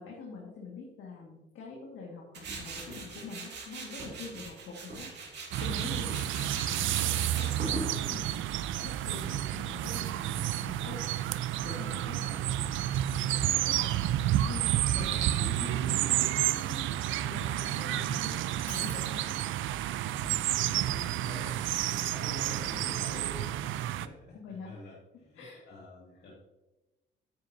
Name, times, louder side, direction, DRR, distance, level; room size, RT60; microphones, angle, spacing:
voice 1, 0.0-5.1 5.6-8.4 8.8-11.1 11.6-12.9 13.1-19.4 24.3-24.9 25.3-25.7, left 4 dB, 90° left, -3 dB, 1.9 m, -45 dB
Tools, 2.3-11.2, right 3 dB, 60° right, 2.5 m, -42 dB
sound 1, 5.5-24.1, right 13 dB, 80° right, 0.4 m, -30 dB
voice 2, 5.8-6.2 17.8-18.3 20.1-26.3, left 2 dB, 55° left, -4 dB, 2.0 m, -46 dB
Shatter, 18.7-19.7, equal, 10° left, 3.2 m, -48 dB
9.4 x 9.2 x 2.7 m, 1.1 s
cardioid pair, 90°, 20 cm